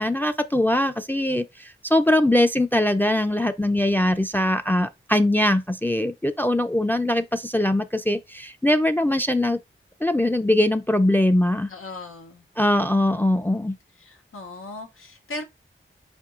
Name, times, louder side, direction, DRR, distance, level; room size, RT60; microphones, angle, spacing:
voice 1, 0.0-9.6 10.0-11.7 12.6-13.8, left 1 dB, 10° left, 0.4 m, -21 dB
voice 2, 11.7-12.4 12.9-13.4 14.0-15.4, left 2 dB, 90° left, 0.7 m, -38 dB
4.6 x 4.4 x 2.4 m
wide cardioid pair, 40°, 21 cm